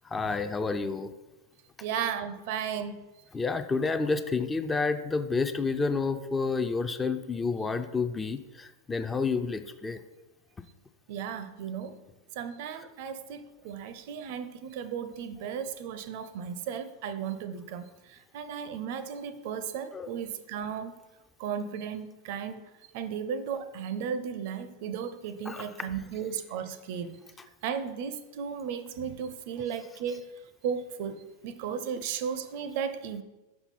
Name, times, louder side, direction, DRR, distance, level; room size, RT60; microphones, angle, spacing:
voice 1, 0.1-1.1 3.3-10.0 19.9-20.1 25.5-25.6, left 4 dB, 15° left, 9 dB, 0.4 m, -29 dB
voice 2, 1.8-3.1 11.1-12.1 12.4-21.0 21.4-22.6 22.9-27.2 27.6-30.3 30.6-33.2, right 7 dB, 50° right, 12 dB, 0.5 m, -35 dB
5.6 x 5.6 x 4.1 m, 1.1 s
figure-of-eight pair, 90°, 0 cm